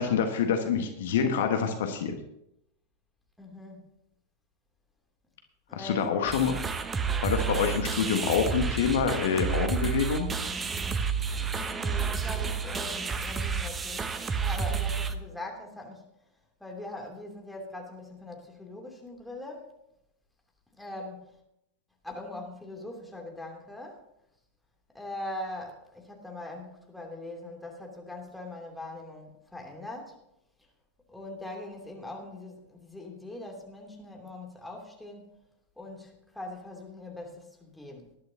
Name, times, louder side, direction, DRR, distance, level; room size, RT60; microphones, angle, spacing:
voice 1, 0.0-2.1 5.7-6.6 7.2-10.3, left 6 dB, 55° left, 5 dB, 1.4 m, -26 dB
voice 2, 3.4-3.8 5.7-6.1 11.5-14.0 14.4-16.0 16.6-19.7 20.7-21.4 22.0-24.0 24.9-30.2 31.1-35.3 35.8-38.2, left 1 dB, 5° left, 0 dB, 2.9 m, -41 dB
sound 1, 6.3-15.2, right 5 dB, 20° right, 0.9 m, -30 dB
19.0 x 11.5 x 2.8 m, 0.80 s
figure-of-eight pair, 90°, 0 cm